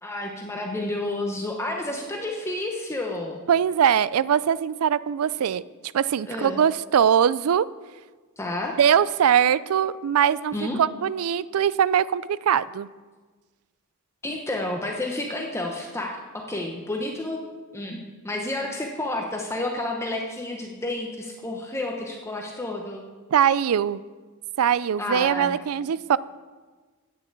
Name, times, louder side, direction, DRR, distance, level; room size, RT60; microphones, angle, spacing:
voice 1, 0.0-3.4 6.3-6.6 8.4-8.8 10.5-10.8 14.2-17.4 17.7-23.0 25.0-25.6, left 2 dB, 15° left, 1 dB, 0.8 m, -30 dB
voice 2, 3.5-5.6 5.9-7.7 8.8-12.9 23.3-24.0 24.6-26.2, right 8 dB, 85° right, 18 dB, 0.4 m, -21 dB
8.7 x 6.8 x 8.1 m, 1.4 s
head